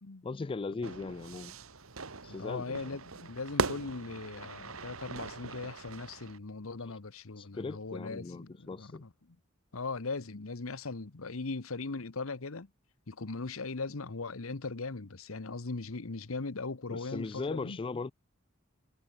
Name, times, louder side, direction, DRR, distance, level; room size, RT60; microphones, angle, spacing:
voice 1, 0.2-1.5 2.2-2.8 6.9-7.0 7.4-9.0 16.9-18.1, left 3 dB, 25° left, 0.3 m, -38 dB
Fire / Fireworks, 0.8-6.4, right 4 dB, 80° right, 2.2 m, -39 dB
voice 2, 2.3-9.4 9.7-12.7 13.1-17.8, left 3 dB, 75° left, 1.1 m, -39 dB
head